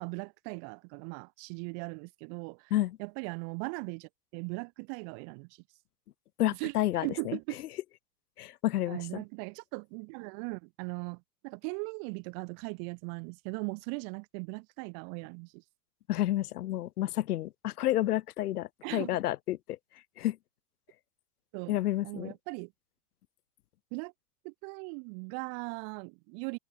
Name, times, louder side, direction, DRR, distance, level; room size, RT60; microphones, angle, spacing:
voice 1, 0.0-2.7 3.0-5.5 6.6-6.7 7.0-7.6 8.9-15.6 18.8-19.2 21.5-21.7 22.0-22.7 23.9-24.1 24.4-26.6, right 40 dB or more, 40° right, 1.2 m, -39 dB
voice 2, 6.4-7.4 8.4-9.2 16.1-19.8 20.2-20.4 21.7-22.3, left 14 dB, 85° left, 1.8 m, -30 dB
supercardioid pair, 150°, 45 cm